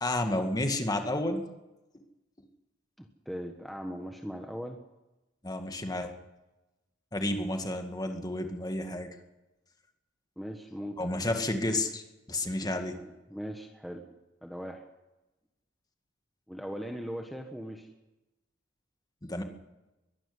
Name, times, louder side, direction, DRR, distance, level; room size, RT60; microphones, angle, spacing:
voice 1, 0.0-1.4 5.4-6.1 7.1-9.1 11.0-12.0 12.3-13.0 19.2-19.4, left 1 dB, 20° left, 5 dB, 2.0 m, -31 dB
voice 2, 3.0-4.8 10.4-11.0 12.4-14.1 14.4-14.8 16.5-17.9, equal, ahead, 3 dB, 1.3 m, -40 dB
22.5 x 12.5 x 9.7 m, 1.0 s
head